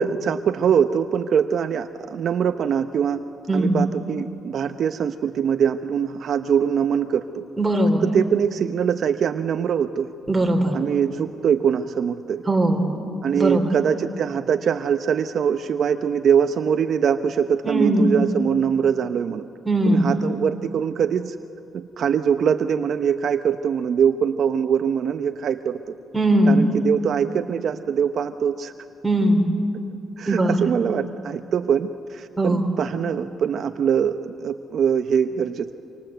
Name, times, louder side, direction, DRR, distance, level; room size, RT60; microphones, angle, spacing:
voice 1, 0.0-3.2 3.5-7.4 8.1-10.1 10.7-12.4 13.2-19.5 19.9-21.4 21.7-25.9 26.5-28.7 30.2-35.7, right 7 dB, 60° right, 8 dB, 0.8 m, -23 dB
voice 2, 3.5-3.9 7.6-8.1 10.3-10.7 12.5-12.9 13.4-13.7 17.6-18.2 19.6-20.2 26.1-26.7 29.0-29.5 30.3-30.6 32.4-32.6, right 1 dB, 10° right, 1 dB, 4.2 m, -19 dB
26.5 x 24.5 x 8.0 m, 2.9 s
cardioid pair, 90°, 0 cm